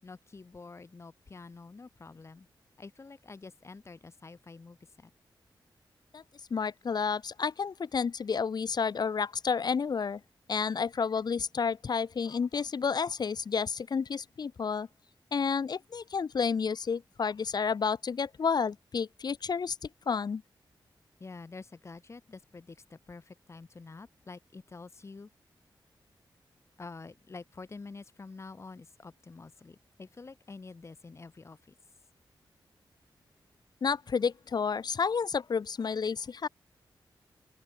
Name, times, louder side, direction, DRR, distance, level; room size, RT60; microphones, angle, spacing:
voice 1, 0.0-2.5 2.8-5.1 21.2-25.3 26.8-31.7, left 4 dB, 35° left, 7.2 m, -48 dB
voice 2, 6.5-10.2 10.5-14.9 15.3-19.8 20.1-20.4 33.8-36.5, left 6 dB, 55° left, 3.0 m, -30 dB
open air
wide cardioid pair, 160°, 8 cm